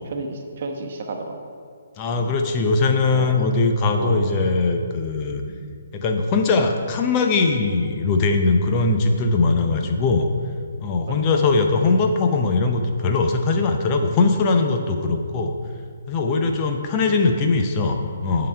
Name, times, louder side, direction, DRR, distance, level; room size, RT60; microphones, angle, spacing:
voice 1, 0.0-1.4 3.1-3.4 4.0-4.3 5.5-5.7 9.8-10.0 11.1-11.2 15.0-15.2 16.4-16.6, right 3 dB, 50° right, 3 dB, 1.0 m, -33 dB
voice 2, 2.0-5.4 5.9-10.3 10.8-15.6 16.1-18.5, left 3 dB, 30° left, 4 dB, 0.6 m, -20 dB
11.0 x 3.9 x 4.7 m, 2.2 s
figure-of-eight pair, 140°, 0 cm